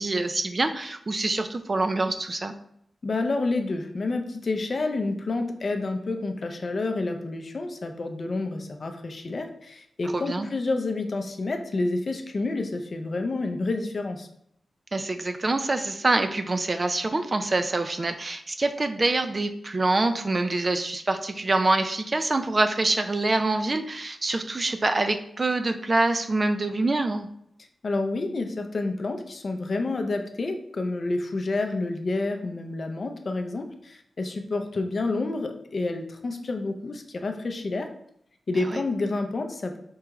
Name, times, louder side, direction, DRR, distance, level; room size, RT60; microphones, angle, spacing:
voice 1, 0.0-2.5 10.1-10.5 14.9-27.3 38.7-38.8, right 2 dB, 35° right, 8 dB, 0.3 m, -25 dB
voice 2, 3.0-14.3 27.8-37.9 38.5-39.8, left 3 dB, 50° left, 5 dB, 0.5 m, -29 dB
4.5 x 2.3 x 3.0 m, 0.72 s
wide cardioid pair, 80°, 0 cm